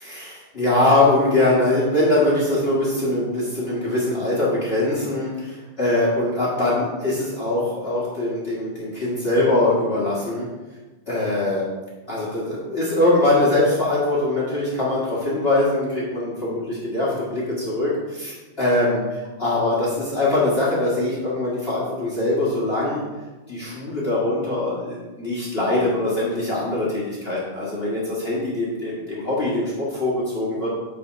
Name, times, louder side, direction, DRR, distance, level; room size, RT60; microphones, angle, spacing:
voice 1, 0.0-10.5 11.1-11.6 12.1-23.0 23.5-30.7, left 2 dB, 70° left, -6 dB, 0.5 m, -22 dB
8.7 x 4.3 x 5.1 m, 1.2 s
omnidirectional pair, 3.9 m